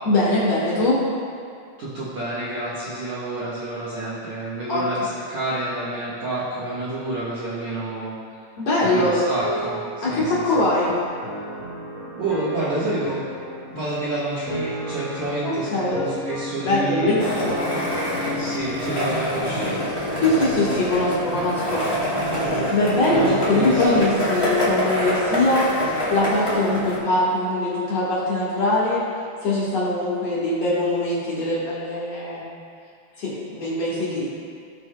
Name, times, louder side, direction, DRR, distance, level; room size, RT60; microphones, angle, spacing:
voice 1, 0.0-1.0 4.7-4.8 8.6-9.2 10.0-10.9 15.4-16.0 16.6-17.7 20.2-21.8 22.7-25.7 26.1-29.0 29.4-32.4 33.2-34.3, left 2 dB, 75° left, -8 dB, 1.4 m, -22 dB
voice 2, 1.8-8.1 8.8-10.4 12.1-13.2 13.7-17.5 18.3-19.8 22.4-22.8 23.1-24.0, right 2 dB, 80° right, -11 dB, 1.5 m, -29 dB
sound 1, 9.3-24.1, equal, 55° right, 1.0 m, -33 dB
Skateboard, 17.2-27.0, equal, 40° left, 0.9 m, -26 dB
18.0 x 6.3 x 2.2 m, 2.4 s
omnidirectional pair, 5.4 m